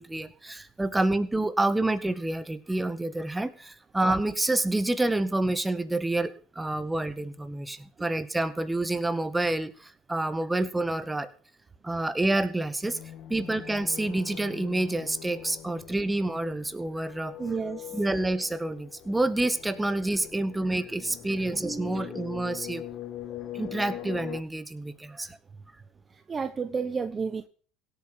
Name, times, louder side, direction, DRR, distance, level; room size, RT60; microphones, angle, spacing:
voice 1, 0.0-11.3 11.8-13.0 13.3-17.3 17.9-22.8 23.5-25.4, right 2 dB, 10° right, 12 dB, 1.9 m, -28 dB
sound 1, 12.8-24.4, left 12 dB, 50° left, 2.1 m, -42 dB
voice 2, 17.4-18.0 21.4-21.5 21.9-22.1 25.1-25.2 26.1-27.5, right 5 dB, 25° right, 11 dB, 1.1 m, -32 dB
17.0 x 8.9 x 6.1 m, 0.42 s
supercardioid pair, 115°, 0 cm